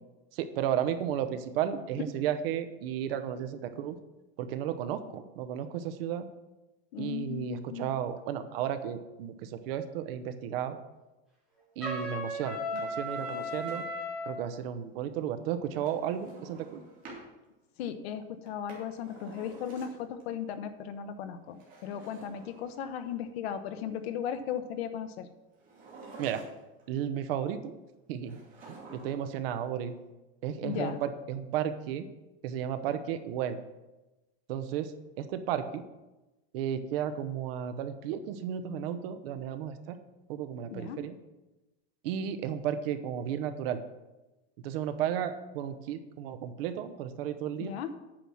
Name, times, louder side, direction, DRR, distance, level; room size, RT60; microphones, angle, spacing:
voice 1, 0.3-4.0 4.4-6.3 7.0-10.8 11.8-13.8 14.3-16.8 26.2-26.5 26.9-27.7 28.1-28.4 28.9-29.9 30.4-32.1 32.4-33.6 34.5-34.9 35.2-35.8 36.5-40.0 40.3-41.1 42.0-43.8 44.6-47.7, right 9 dB, 65° right, 10 dB, 0.9 m, -33 dB
voice 2, 6.9-7.9 17.8-25.3 30.6-31.0 40.7-41.0 47.6-47.9, left 8 dB, 80° left, 10 dB, 1.0 m, -36 dB
Trumpet, 11.8-14.3, left 1 dB, ahead, 3.9 m, -35 dB
Drawer open or close, 12.8-14.1 15.8-17.3 18.4-20.2 21.5-23.1 25.6-26.8 28.3-29.4 29.6-29.7, right 3 dB, 25° right, 2.6 m, -50 dB
8.9 x 5.8 x 6.3 m, 1.1 s
supercardioid pair, 175°, 31 cm